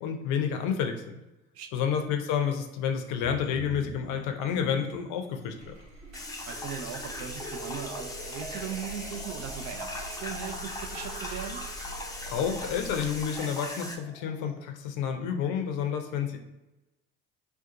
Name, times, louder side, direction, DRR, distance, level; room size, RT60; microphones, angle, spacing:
voice 1, 0.0-1.0 1.7-5.8 12.3-16.4, left 7 dB, 65° left, 5 dB, 0.6 m, -30 dB
voice 2, 1.5-1.9 6.5-11.6, right 8 dB, 50° right, 6 dB, 0.5 m, -39 dB
sound 1, 3.2-5.1 5.5-14.6, right 1 dB, 25° right, 0.9 m, -45 dB
sound 2, 5.5-13.4, right 2 dB, 80° right, 1.2 m, -45 dB
sound 3, 6.1-14.0, left 2 dB, 10° left, 0.5 m, -39 dB
2.6 x 2.3 x 3.7 m, 1.0 s
hypercardioid pair, 65°, 34 cm